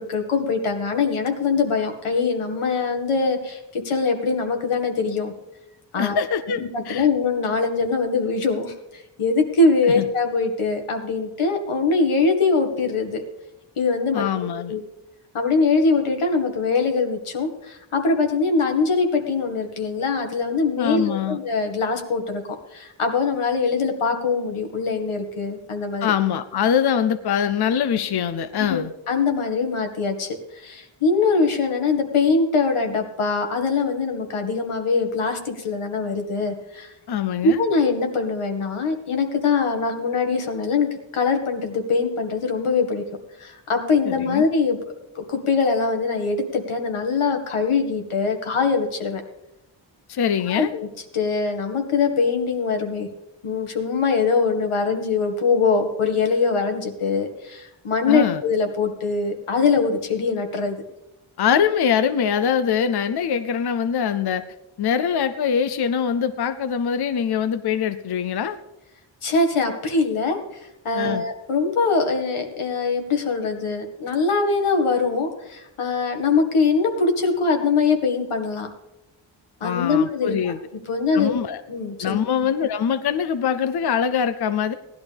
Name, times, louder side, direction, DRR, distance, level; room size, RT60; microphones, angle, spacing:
voice 1, 0.0-5.3 5.9-6.2 6.5-13.2 13.8-14.3 14.7-14.9 15.3-22.4 22.7-26.1 28.7-36.9 37.4-43.0 43.4-44.8 45.2-49.2 50.5-50.9 51.1-53.1 53.4-60.8 69.2-78.7 79.6-80.5 80.9-81.3 81.7-82.2, left 4 dB, 85° left, 4 dB, 2.0 m, -22 dB
voice 2, 6.0-7.1 10.0-10.1 14.1-14.7 20.8-21.4 26.0-28.9 37.1-37.6 44.0-44.5 50.1-50.7 58.1-58.4 61.4-64.4 64.8-68.6 70.9-71.2 79.6-80.6 81.1-81.6 82.0-84.7, left 8 dB, 55° left, 11 dB, 0.6 m, -23 dB
18.5 x 11.5 x 3.5 m, 0.97 s
wide cardioid pair, 165°, 49 cm